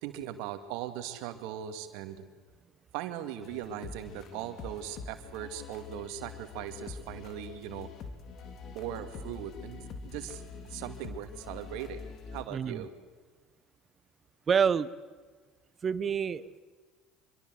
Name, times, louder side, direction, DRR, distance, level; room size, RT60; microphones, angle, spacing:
voice 1, 0.0-2.2 2.9-7.9 8.7-12.9, right 10 dB, 70° right, 8 dB, 2.2 m, -39 dB
sound 1, 3.4-12.4, left 5 dB, 55° left, 3.3 m, -45 dB
voice 2, 12.5-12.8 14.5-14.9 15.8-16.6, right 7 dB, 35° right, 17 dB, 1.1 m, -27 dB
25.5 x 23.0 x 7.8 m, 1.4 s
hypercardioid pair, 70°, 0 cm